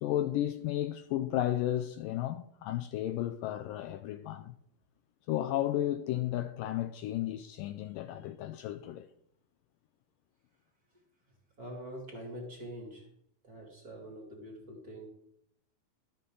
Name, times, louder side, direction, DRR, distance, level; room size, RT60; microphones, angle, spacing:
voice 1, 0.0-4.5 5.3-9.1, left 13 dB, 80° left, 2.0 m, -33 dB
voice 2, 11.6-13.1 13.4-15.1, equal, 25° right, 2.8 m, -44 dB
14.0 x 13.0 x 3.9 m
omnidirectional pair, 4.4 m